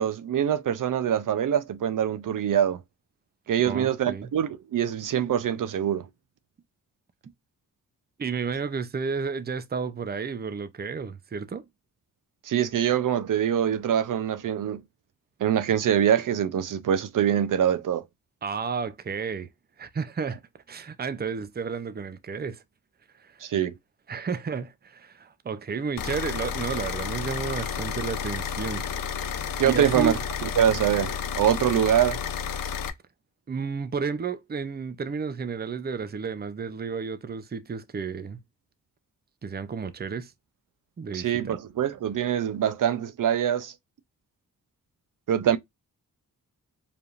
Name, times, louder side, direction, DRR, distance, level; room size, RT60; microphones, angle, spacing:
voice 1, 0.0-2.8 3.5-6.0 12.4-14.8 15.4-18.0 23.4-23.7 29.6-30.1 30.6-32.2 41.1-43.7 45.3-45.6, right 9 dB, 70° right, 0.6 m, -24 dB
voice 2, 3.6-4.3 8.2-11.6 18.4-19.5 19.8-20.4 20.7-22.6 23.1-23.4 24.1-28.8 29.6-30.2 33.5-38.4 39.4-40.3 41.0-41.6, right 5 dB, 30° right, 0.6 m, -32 dB
sound 1, 26.0-32.9, left 7 dB, 80° left, 0.7 m, -31 dB
4.7 x 3.5 x 2.5 m
wide cardioid pair, 125°, 33 cm